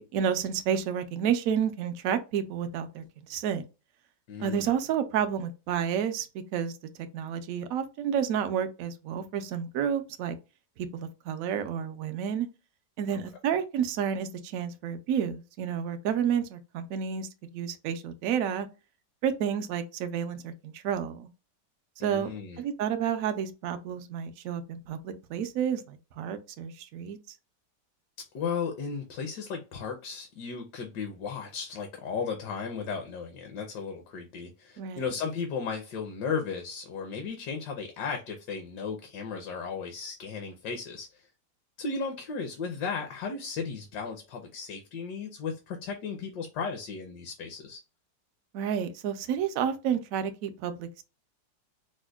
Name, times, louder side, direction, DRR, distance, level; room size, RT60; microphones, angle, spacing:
voice 1, 0.0-3.0 3.3-3.6 4.4-6.3 6.5-6.7 7.1-10.4 10.9-12.5 13.0-18.7 19.2-21.3 22.0-27.2 34.8-35.1 48.5-51.0, right 8 dB, 75° right, 0.8 m, -30 dB
voice 2, 4.3-4.7 13.1-13.2 22.0-22.6 28.3-41.2 41.8-47.8, left 5 dB, 70° left, 1.2 m, -35 dB
5.0 x 2.1 x 2.2 m
omnidirectional pair, 1.9 m